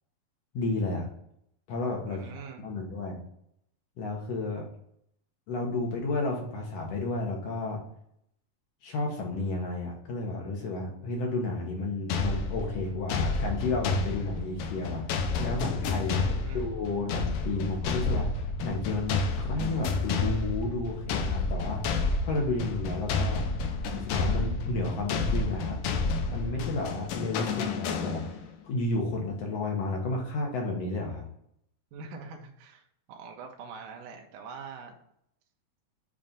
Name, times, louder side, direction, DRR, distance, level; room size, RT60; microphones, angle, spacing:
voice 1, 0.5-1.1 1.7-2.3 2.6-3.2 4.0-4.7 5.5-7.8 8.8-15.0 15.4-16.2 16.5-18.3 18.6-21.8 22.2-23.4 24.0-25.8 26.3-28.2 28.6-31.2, left 2 dB, 65° left, 0 dB, 1.7 m, -32 dB
voice 2, 2.1-2.7 16.0-16.6 31.9-35.0, right 5 dB, 75° right, 2 dB, 2.2 m, -44 dB
sound 1, 12.1-28.5, left 3 dB, 80° left, 2.3 m, -30 dB
sound 2, 19.2-24.5, equal, 50° left, 2.0 m, -39 dB
7.4 x 2.5 x 5.2 m, 0.72 s
omnidirectional pair, 4.0 m